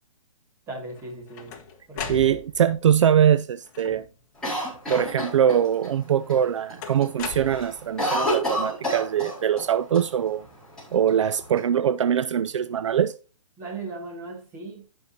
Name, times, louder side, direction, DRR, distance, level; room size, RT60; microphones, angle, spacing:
voice 1, 0.7-1.6 1.9-2.4 13.6-14.9, right 3 dB, 15° right, 2.2 m, -37 dB
sound 1, 1.0-2.8 3.6-4.2 4.9-5.4 6.8-8.1, left 5 dB, 30° left, 1.4 m, -38 dB
voice 2, 2.1-4.1 4.9-10.4 10.9-13.1, right 9 dB, 60° right, 0.4 m, -22 dB
Cough, 4.4-5.9 6.3-6.4 6.7-7.1 7.4-9.7 9.9-10.0 10.8-11.6, equal, 5° left, 4.4 m, -28 dB
16.0 x 5.5 x 2.8 m
hypercardioid pair, 150°, 17 cm